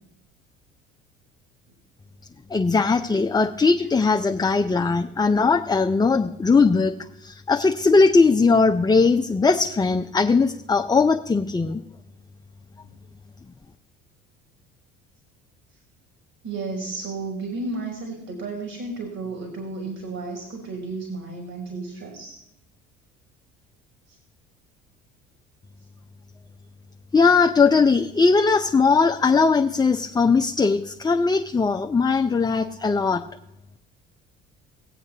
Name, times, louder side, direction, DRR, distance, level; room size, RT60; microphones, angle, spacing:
voice 1, 2.5-6.9 7.2-11.8 27.1-33.2, left 4 dB, 15° left, 5 dB, 0.6 m, -19 dB
voice 2, 16.4-22.4 24.1-24.2, right 3 dB, 50° right, 1 dB, 3.2 m, -33 dB
20.0 x 8.0 x 2.9 m, 0.84 s
hypercardioid pair, 65°, 32 cm